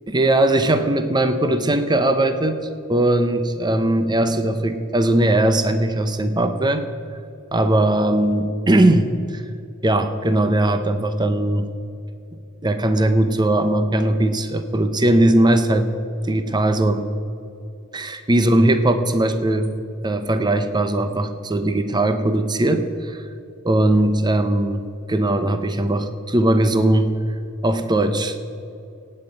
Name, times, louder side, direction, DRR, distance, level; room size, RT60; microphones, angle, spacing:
voice 1, 0.1-2.6 2.9-6.8 7.5-9.4 9.8-11.7 12.6-15.9 16.2-17.1 17.9-19.7 20.0-23.2 23.6-24.8 25.1-27.1 27.6-28.4, right 1 dB, 20° right, 9 dB, 0.7 m, -19 dB
17.5 x 8.8 x 5.3 m, 2.7 s
head